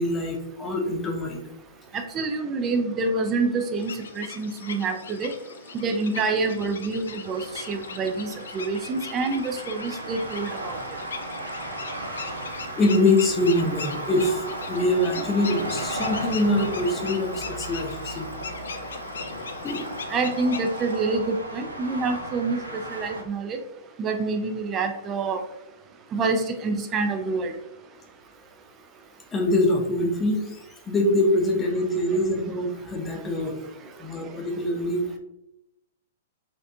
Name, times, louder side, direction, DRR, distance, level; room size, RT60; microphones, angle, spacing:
voice 1, 0.0-1.4 12.8-18.3 19.6-19.9 29.3-30.6 30.9-33.5 34.0-35.0, left 1 dB, 20° left, 2 dB, 0.7 m, -24 dB
voice 2, 2.1-3.9 4.2-5.3 5.7-10.8 20.1-22.6 22.9-23.6 24.0-25.4 26.1-27.5, right 3 dB, 25° right, 6 dB, 0.4 m, -27 dB
sound 1, 3.8-21.0, left 6 dB, 70° left, 0.3 m, -40 dB
sound 2, 7.2-23.2, right 1 dB, 90° right, 0.6 m, -35 dB
4.3 x 2.5 x 2.7 m, 0.90 s
figure-of-eight pair, 110°, 0 cm